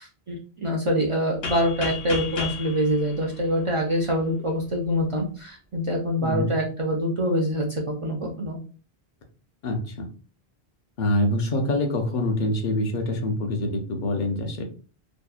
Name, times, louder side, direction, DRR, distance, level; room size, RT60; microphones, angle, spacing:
voice 1, 0.0-8.6, equal, 55° right, -2 dB, 0.3 m, -25 dB
sound 1, 1.4-4.2, left 4 dB, 75° left, 0.9 m, -34 dB
voice 2, 6.2-6.6 9.6-10.1 11.0-14.6, left 1 dB, 55° left, 4 dB, 0.6 m, -25 dB
2.7 x 2.0 x 2.3 m, 0.38 s
omnidirectional pair, 1.1 m